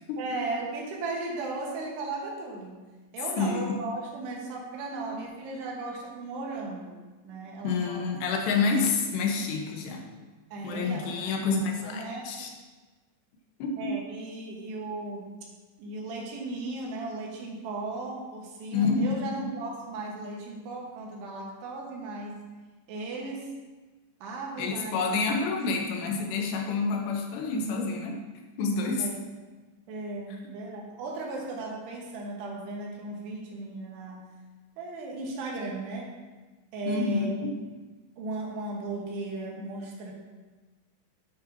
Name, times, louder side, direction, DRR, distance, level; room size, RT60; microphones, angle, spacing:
voice 1, 0.2-2.9 3.1-7.0 7.2-8.0 10.5-11.6 11.8-12.3 13.8-15.3 15.8-22.4 22.9-23.5 24.2-25.2 29.0-29.2 29.9-34.3 34.8-36.1 36.7-37.4 38.2-40.1, right 3 dB, 75° right, -1 dB, 3.3 m, -36 dB
voice 2, 3.4-3.8 7.6-10.1 10.6-12.5 13.6-14.0 18.7-19.1 19.4-19.5 24.6-28.2 28.6-29.1 36.9-37.5, left 4 dB, 75° left, 1 dB, 3.0 m, -28 dB
10.5 x 8.9 x 2.7 m, 1.3 s
omnidirectional pair, 5.1 m